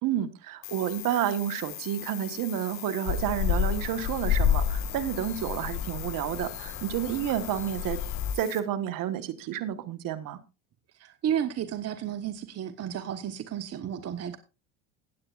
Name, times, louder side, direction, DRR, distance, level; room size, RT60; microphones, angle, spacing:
voice 1, 0.0-8.0 8.3-10.4, right 11 dB, 55° right, 1.4 m, -30 dB
sound 1, 0.6-8.6, left 13 dB, 65° left, 1.6 m, -41 dB
sound 2, 3.1-8.3, left 8 dB, 45° left, 2.0 m, -30 dB
voice 2, 10.9-14.4, right 9 dB, 40° right, 1.0 m, -32 dB
16.5 x 8.6 x 2.4 m
hypercardioid pair, 85°, 39 cm